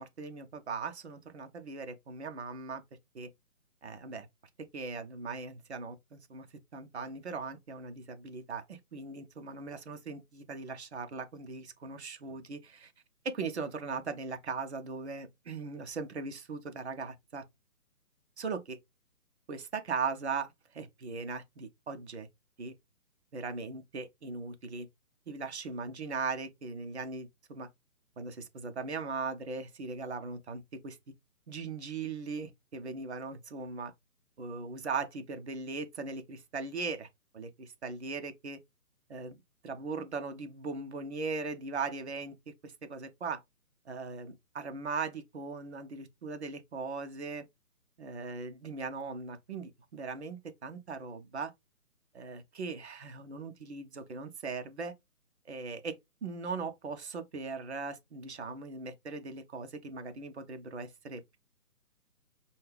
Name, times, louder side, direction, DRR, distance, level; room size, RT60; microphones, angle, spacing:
voice 1, 0.0-2.8 3.1-3.3 3.8-4.3 4.6-6.5 6.7-12.9 13.2-17.4 18.4-18.8 19.5-22.3 22.6-22.7 23.3-24.9 25.3-27.7 28.2-31.0 31.5-33.9 34.4-37.1 37.3-38.6 39.1-42.3 42.6-43.4 43.9-47.4 48.0-51.5 52.1-54.9 55.5-61.4, right 4 dB, 45° right, 0.8 m, -39 dB
5.2 x 2.3 x 3.4 m
figure-of-eight pair, 145°, 45 cm